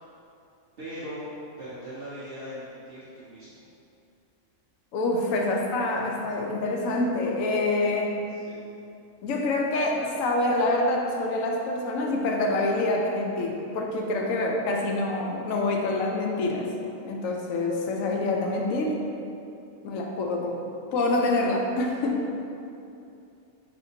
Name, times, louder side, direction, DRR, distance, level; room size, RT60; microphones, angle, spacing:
voice 1, 0.8-1.3 1.6-3.6 8.3-8.8 17.8-18.4, equal, 55° right, -9 dB, 0.8 m, -41 dB
voice 2, 4.9-8.2 9.2-16.7 17.0-18.9 19.8-20.6 20.9-22.3, left 2 dB, 90° left, 0 dB, 1.0 m, -26 dB
5.1 x 2.8 x 2.7 m, 2.7 s
omnidirectional pair, 1.3 m